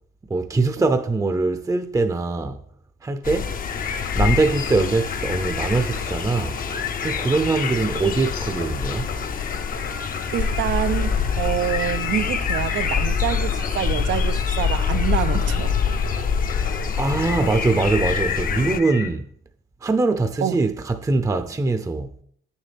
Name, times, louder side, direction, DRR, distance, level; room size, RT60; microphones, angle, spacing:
voice 1, 0.3-2.6 3.0-3.6 4.1-6.6 7.0-9.1 17.0-19.3 19.8-22.2, right 3 dB, 15° right, 0.6 m, -22 dB
sound 1, 3.2-18.8, left 6 dB, 45° left, 0.7 m, -25 dB
Singing, 3.7-19.1, left 6 dB, 75° left, 1.8 m, -35 dB
voice 2, 10.3-15.8 20.4-20.6, right 11 dB, 75° right, 0.5 m, -26 dB
8.7 x 7.0 x 3.4 m
cardioid pair, 90°, 20 cm